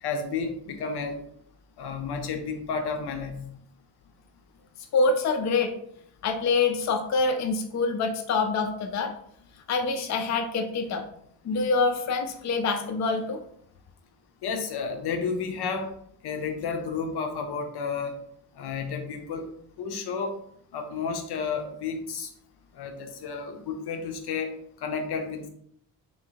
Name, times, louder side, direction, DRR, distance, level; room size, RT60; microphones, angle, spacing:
voice 1, 0.0-1.2 1.8-3.5 14.4-15.9 16.2-18.1 18.6-19.5 19.8-20.3 20.7-22.3 22.8-24.5 24.8-25.5, left 5 dB, 80° left, 5 dB, 0.8 m, -31 dB
voice 2, 4.9-5.7 6.2-9.1 9.7-11.1 11.4-13.4, left 4 dB, 45° left, 5 dB, 0.5 m, -25 dB
3.2 x 2.9 x 4.5 m, 0.67 s
wide cardioid pair, 180°, 38 cm